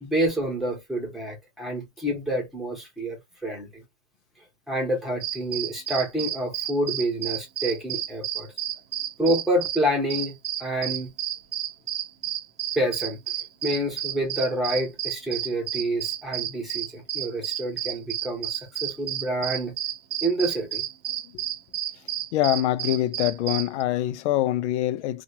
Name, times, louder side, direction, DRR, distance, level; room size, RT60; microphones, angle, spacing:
voice 1, 0.0-3.8 4.7-8.5 9.2-10.3 10.6-11.1 12.7-13.2 13.6-19.8 20.2-20.8, right 1 dB, ahead, 1.0 m, -28 dB
sound 1, 5.2-9.8 10.1-23.8, right 11 dB, 90° right, 0.7 m, -31 dB
voice 2, 22.3-25.2, left 13 dB, 75° left, 0.6 m, -24 dB
2.9 x 2.4 x 2.8 m
supercardioid pair, 170°, 35 cm